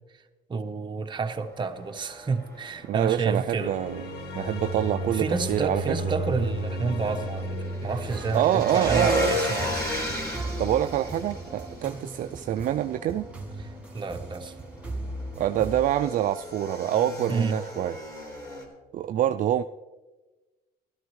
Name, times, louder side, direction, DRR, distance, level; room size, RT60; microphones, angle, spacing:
voice 1, 0.5-3.7 5.1-9.8 13.6-13.7 13.9-14.5 17.3-17.6, right 4 dB, 25° right, 5 dB, 0.9 m, -29 dB
Motorcycle / Engine, 1.2-18.6, left 1 dB, 20° left, 3.6 m, -36 dB
voice 2, 2.9-4.0 4.3-6.1 8.3-9.4 10.6-13.3 15.4-18.0 18.9-19.6, right 11 dB, 55° right, 9 dB, 0.4 m, -26 dB
sound 1, 3.6-8.7, equal, 75° left, 1.4 m, -33 dB
sound 2, 8.0-15.9, right 1 dB, 10° right, 1.5 m, -37 dB
14.5 x 12.5 x 3.1 m, 1.2 s
cardioid pair, 110°, 17 cm